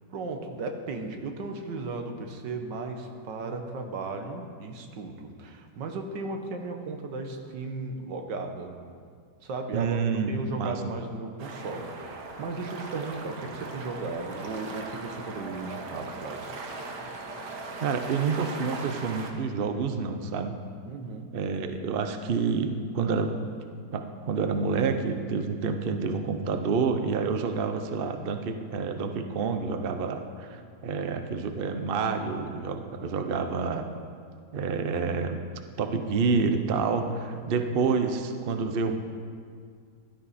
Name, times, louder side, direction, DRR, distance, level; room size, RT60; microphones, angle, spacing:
voice 1, 0.1-8.8 9.4-10.0 10.3-16.6 20.9-21.3 37.3-37.7, right 3 dB, 90° right, 5 dB, 1.8 m, -36 dB
voice 2, 9.7-10.8 17.8-20.6 21.3-23.3 23.9-33.9 34.5-35.4 35.8-38.9, right 5 dB, 45° right, 7 dB, 0.8 m, -28 dB
sound 1, 11.4-19.3, right 3 dB, 75° right, 1.8 m, -39 dB
15.0 x 12.5 x 4.3 m, 2.1 s
omnidirectional pair, 1.9 m